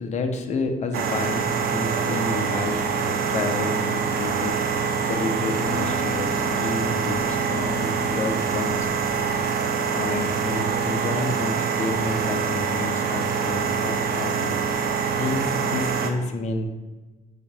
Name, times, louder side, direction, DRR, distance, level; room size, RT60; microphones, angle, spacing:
voice 1, 0.0-4.6 5.0-8.9 9.9-16.7, left 3 dB, 45° left, 4 dB, 1.0 m, -30 dB
sound 1, 0.9-16.1, right 6 dB, 65° right, 0.9 m, -25 dB
sound 2, 4.2-9.5 11.9-12.4, equal, 5° left, 1.8 m, -43 dB
Bass guitar, 5.7-11.9, left 4 dB, 70° left, 0.6 m, -40 dB
9.9 x 4.1 x 3.5 m, 1.2 s
cardioid pair, 110°, 17 cm